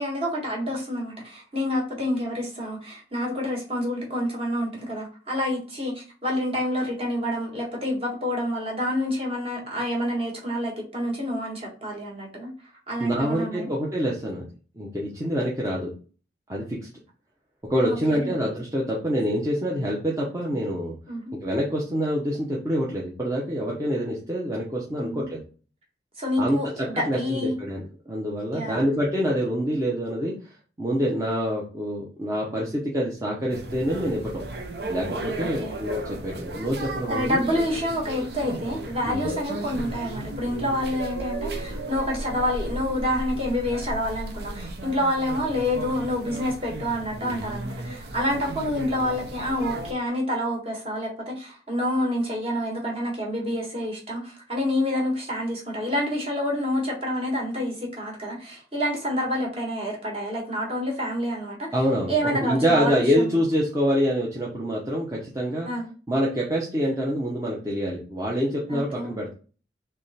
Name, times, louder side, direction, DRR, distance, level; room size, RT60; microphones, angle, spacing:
voice 1, 0.0-12.5 12.9-13.7 17.9-18.3 21.1-21.2 25.0-25.2 26.2-27.6 28.5-28.8 35.4-35.7 37.1-61.7 62.1-63.4 65.6-65.9 68.7-69.2, left 1 dB, 35° right, -1 dB, 1.4 m, -28 dB
voice 2, 13.0-14.5 14.8-15.9 16.5-16.8 17.7-21.0 21.4-25.4 26.4-30.3 30.8-34.4 34.9-37.4 39.1-39.3 61.7-62.1 62.4-65.7 66.1-69.3, equal, 20° right, -4 dB, 0.7 m, -26 dB
sound 1, 33.5-49.9, right 2 dB, 70° right, 0.7 m, -35 dB
3.4 x 3.3 x 4.1 m, 0.38 s
head